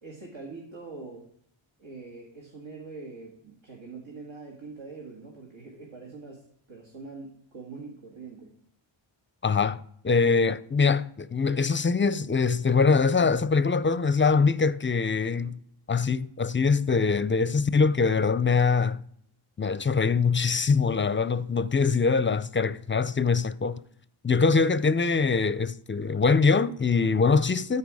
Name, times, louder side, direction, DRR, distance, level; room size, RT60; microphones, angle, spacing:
voice 1, 0.0-1.3 1.8-8.5, right 3 dB, 70° right, 2.0 m, -43 dB
voice 2, 9.4-15.6 15.9-19.0 19.6-23.8 24.2-27.8, left 4 dB, 25° left, 0.5 m, -23 dB
13.5 x 4.5 x 4.8 m
wide cardioid pair, 55°, 48 cm